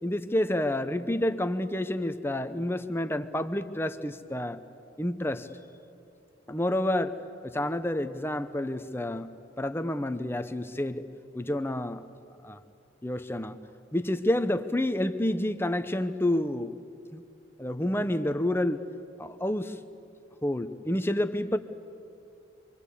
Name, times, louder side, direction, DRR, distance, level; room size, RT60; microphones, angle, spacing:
voice 1, 0.0-4.6 5.0-5.5 6.5-7.2 7.4-9.3 9.6-11.0 11.3-12.0 12.4-12.6 13.0-13.6 13.9-16.7 17.1-17.2 17.6-18.8 19.2-19.8 20.4-21.6, left 1 dB, 10° left, 10 dB, 0.8 m, -29 dB
27.0 x 24.5 x 8.5 m, 2.6 s
head